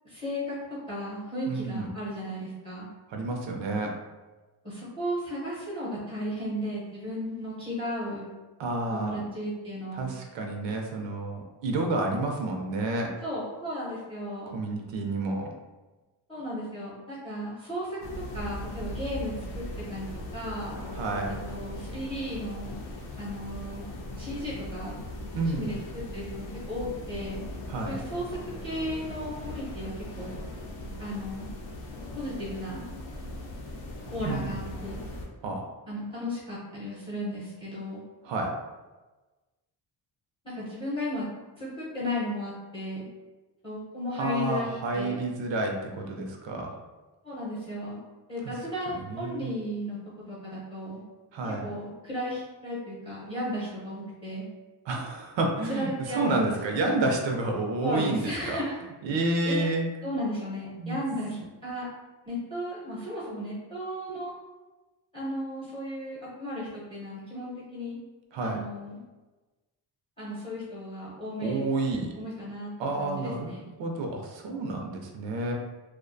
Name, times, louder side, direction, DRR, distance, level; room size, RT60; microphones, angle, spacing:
voice 1, 0.0-0.5 0.9-2.9 4.6-8.3 8.9-10.1 13.2-14.5 16.3-18.0 18.3-19.6 19.9-20.1 20.3-20.8 21.5-22.8 23.2-25.0 25.5-25.8 26.1-27.4 27.8-28.3 28.6-30.3 31.0-31.5 32.1-32.8 34.1-35.0 35.9-38.0 40.4-41.3 41.6-43.1 43.6-44.7 44.9-45.2 47.2-48.0 48.3-50.0 50.3-51.0 51.4-54.4 55.7-56.8 57.8-58.7 59.4-59.7 60.0-61.9 62.2-64.3 65.1-68.0 68.4-69.0 70.2-71.6 72.1-72.7 73.0-73.6, equal, 15° left, -9 dB, 0.7 m, -34 dB
voice 2, 1.5-1.9 3.1-3.9 8.6-9.2 9.9-13.1 14.5-15.5 20.9-21.3 25.3-25.7 27.7-28.0 34.2-34.6 35.4-35.7 38.2-38.5 44.2-46.8 48.9-49.5 51.3-51.7 54.9-58.6 59.0-59.9 60.8-61.0 68.3-68.6 71.4-72.1 72.8-73.5 73.8-75.5, right 2 dB, 80° right, 2 dB, 0.5 m, -30 dB
sound 1, 18.0-35.3, left 1 dB, 90° left, 0.6 m, -39 dB
2.4 x 2.1 x 2.5 m, 1.2 s
wide cardioid pair, 155°, 44 cm